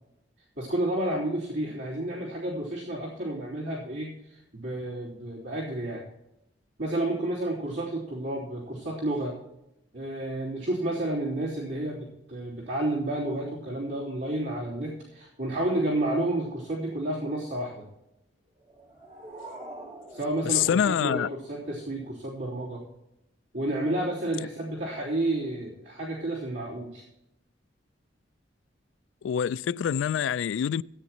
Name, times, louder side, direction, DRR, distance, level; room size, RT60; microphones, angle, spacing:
voice 1, 0.6-6.0 6.8-9.4 9.9-17.9 20.1-22.8 23.5-27.0, right 1 dB, 80° right, 3.4 m, -31 dB
sound 1, 18.6-21.6, right 1 dB, 35° right, 2.2 m, -45 dB
voice 2, 20.4-21.3 29.2-30.8, left 8 dB, 85° left, 0.3 m, -25 dB
16.0 x 9.4 x 3.0 m
head